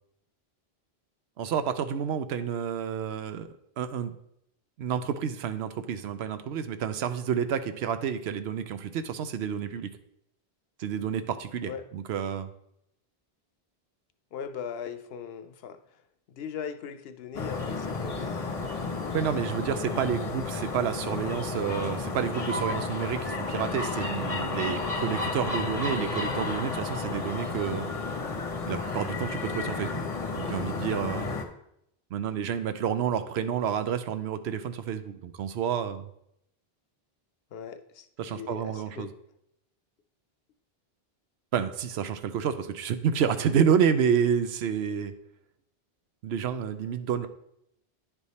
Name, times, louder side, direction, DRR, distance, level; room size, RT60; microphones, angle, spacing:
voice 1, 1.4-3.5 3.8-4.1 4.8-9.9 10.8-12.5 19.1-27.9 28.7-30.0 30.3-31.3 32.1-36.1 38.2-39.1 41.5-45.1 46.2-47.3, right 8 dB, 90° right, 10 dB, 0.9 m, -29 dB
voice 2, 14.3-15.8 16.3-18.3 37.5-39.1, left 7 dB, 75° left, 10 dB, 0.8 m, -39 dB
sound 1, 17.3-31.4, left 3 dB, 40° left, 0.8 m, -32 dB
9.8 x 3.4 x 4.1 m, 0.77 s
omnidirectional pair, 1.1 m